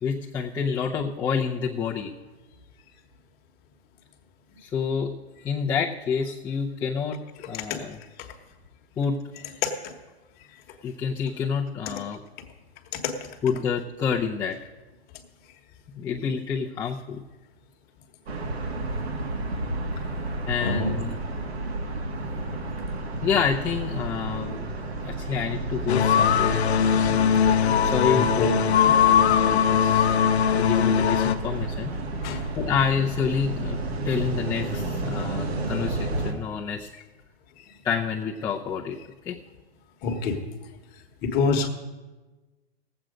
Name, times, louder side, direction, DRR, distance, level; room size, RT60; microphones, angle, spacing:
voice 1, 0.0-2.1 4.6-5.2 5.4-7.2 7.5-8.0 9.0-9.2 10.8-12.2 13.4-14.6 15.9-17.2 20.5-21.1 23.2-24.6 25.0-26.6 27.8-28.6 28.9-29.0 29.3-30.1 30.5-32.0 32.5-33.8 34.0-36.9 37.8-39.0 39.3-39.4, left 6 dB, 15° left, -6 dB, 0.7 m, -28 dB
voice 2, 9.6-9.9 12.9-13.1 20.6-20.9 28.1-28.6 32.2-32.4 37.6-37.7 40.0-40.4 41.2-41.7, left 4 dB, 30° left, 4 dB, 1.3 m, -26 dB
sound 1, 18.3-36.3, right 2 dB, 75° right, 2.1 m, -31 dB
sound 2, 25.9-31.4, left 8 dB, 85° left, 0.8 m, -20 dB
18.0 x 7.9 x 5.1 m, 1.2 s
hypercardioid pair, 135°, 32 cm